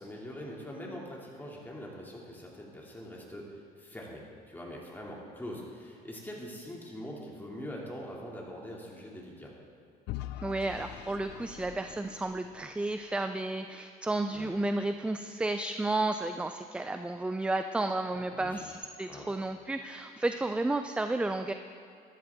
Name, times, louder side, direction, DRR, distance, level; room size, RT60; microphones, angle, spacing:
voice 1, 0.0-9.5 14.3-14.5 18.1-18.6 19.1-19.3, equal, 10° left, -3 dB, 2.4 m, -43 dB
Vehicle / Engine, 10.1-13.1, left 14 dB, 80° left, 0.4 m, -43 dB
voice 2, 10.4-21.5, right 2 dB, 5° right, 8 dB, 0.3 m, -32 dB
12.5 x 12.5 x 3.6 m, 2.5 s
cardioid pair, 110°, 17 cm